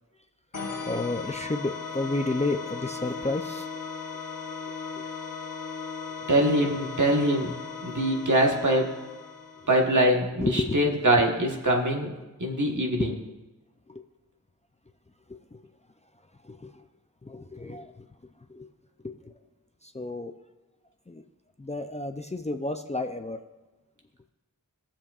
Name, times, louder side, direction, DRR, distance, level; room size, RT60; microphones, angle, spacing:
sound 1, 0.5-10.0, left 5 dB, 65° left, 1.2 m, -37 dB
voice 1, 0.9-3.7 5.0-5.1 10.4-10.8 13.0-13.2 13.9-14.0 15.3-15.6 16.5-16.7 17.2-18.1 18.5-18.7 19.0-19.3 19.8-20.3 21.1-21.2 21.6-23.4, left 2 dB, 20° left, 6 dB, 0.5 m, -31 dB
voice 2, 6.3-7.5 7.8-9.0 9.7-12.1 12.4-13.2, right 1 dB, 60° right, 0 dB, 1.5 m, -23 dB
16.5 x 7.3 x 2.4 m, 1.1 s
wide cardioid pair, 50°, 34 cm